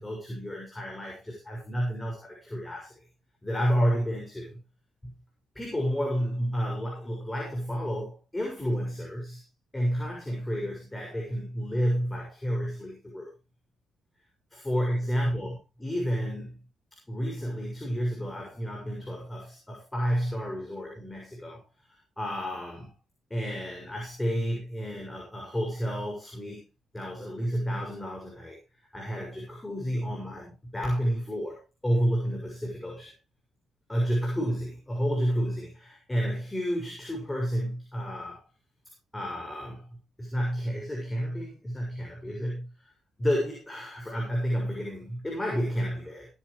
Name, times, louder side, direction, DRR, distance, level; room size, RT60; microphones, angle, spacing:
voice 1, 0.0-2.9 3.4-4.6 5.0-5.1 5.5-9.4 9.7-13.3 14.5-16.6 17.1-21.6 22.2-22.9 23.3-26.7 26.9-28.6 28.9-33.1 33.9-38.4 39.1-39.9 40.2-42.9 43.2-46.3, equal, 10° left, -1 dB, 6.4 m, -31 dB
18.5 x 9.7 x 3.2 m, 0.28 s
cardioid pair, 90°, 0 cm